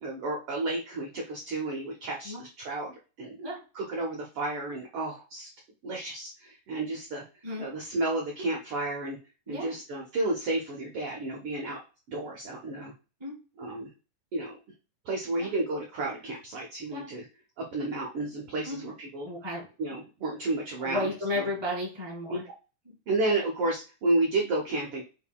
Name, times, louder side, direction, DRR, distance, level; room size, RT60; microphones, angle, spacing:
voice 1, 0.0-3.5 3.7-5.5 5.8-7.2 7.6-9.2 9.5-11.8 12.1-12.9 13.6-13.9 14.3-14.6 15.0-17.2 17.6-19.3 19.8-21.1 21.3-21.5 22.3-22.4 23.1-25.0, right 2 dB, 75° right, 0 dB, 1.3 m, -31 dB
voice 2, 19.2-19.7 20.8-22.4, left 1 dB, 10° right, -4 dB, 1.2 m, -33 dB
5.5 x 3.7 x 2.2 m, 0.32 s
omnidirectional pair, 3.8 m